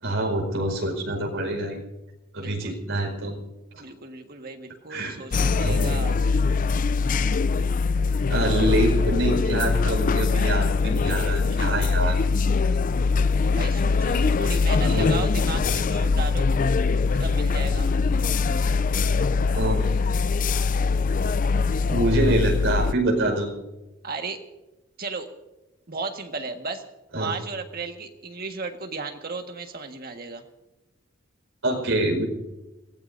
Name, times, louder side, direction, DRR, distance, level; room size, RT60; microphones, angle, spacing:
voice 1, 0.0-1.8 2.3-3.4 3.7-3.8 4.9-5.2 5.5-6.1 8.3-12.2 14.8-15.2 19.5-20.0 21.9-23.5 27.1-27.4 31.6-32.2, right 1 dB, 65° right, 1 dB, 5.1 m, -25 dB
voice 2, 2.4-2.8 3.8-6.2 13.5-16.5 17.2-17.9 24.0-24.4 25.0-25.3 25.9-26.8 27.1-30.4, right 4 dB, 45° right, 5 dB, 1.7 m, -35 dB
sound 1, 5.3-22.9, left 4 dB, 40° left, 0.4 m, -22 dB
28.5 x 17.0 x 2.7 m, 1.1 s
head